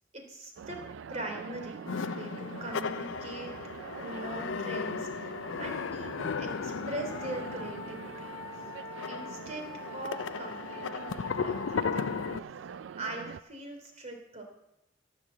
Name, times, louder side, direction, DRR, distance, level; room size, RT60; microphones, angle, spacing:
voice 1, 0.1-3.5 4.0-8.7 9.1-12.2 13.0-14.4, right 1 dB, 35° right, 3 dB, 3.0 m, -42 dB
sound 1, 0.6-0.7 1.1-4.8 6.4-13.7, left 6 dB, 30° left, 1.4 m, -49 dB
sound 2, 0.6-13.4, right 7 dB, 70° right, 0.4 m, -44 dB
sound 3, 1.9-12.4, left 5 dB, 80° left, 0.5 m, -36 dB
16.5 x 7.0 x 7.6 m, 0.87 s
head